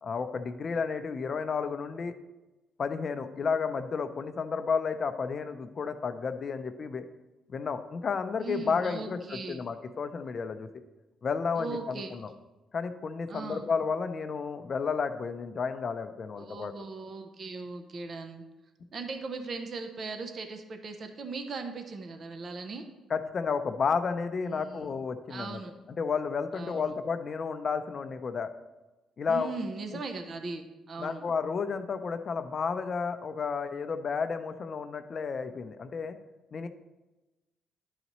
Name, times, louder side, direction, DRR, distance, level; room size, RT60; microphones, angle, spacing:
voice 1, 0.0-2.1 2.8-7.1 7.5-10.7 11.2-12.3 12.7-16.7 23.1-25.6 25.9-28.5 29.2-29.5 31.0-36.2 36.5-36.7, left 5 dB, 45° left, 9 dB, 0.5 m, -32 dB
voice 2, 8.4-9.6 11.6-12.1 13.3-13.7 16.4-18.4 18.9-22.9 24.5-24.8 25.3-25.7 26.5-26.8 29.3-31.2, right 4 dB, 50° right, 6 dB, 0.6 m, -38 dB
11.0 x 4.0 x 3.0 m, 1.1 s
cardioid pair, 90°, 0 cm